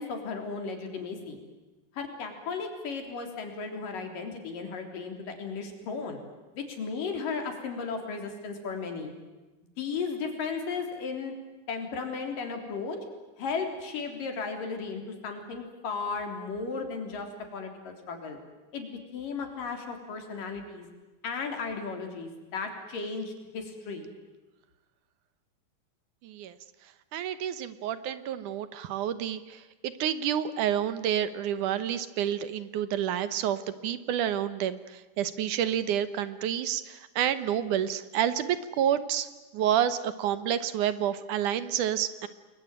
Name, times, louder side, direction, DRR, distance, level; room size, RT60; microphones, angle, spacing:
voice 1, 0.0-1.4 1.9-6.2 6.5-9.1 9.8-11.3 11.7-13.0 13.4-17.3 17.5-18.4 18.7-20.9 21.2-24.1, left 5 dB, 80° left, 4 dB, 5.2 m, -35 dB
voice 2, 26.2-26.6 27.1-39.3 39.5-42.3, right 10 dB, 70° right, 13 dB, 2.5 m, -29 dB
29.0 x 21.5 x 9.1 m, 1.2 s
omnidirectional pair, 3.8 m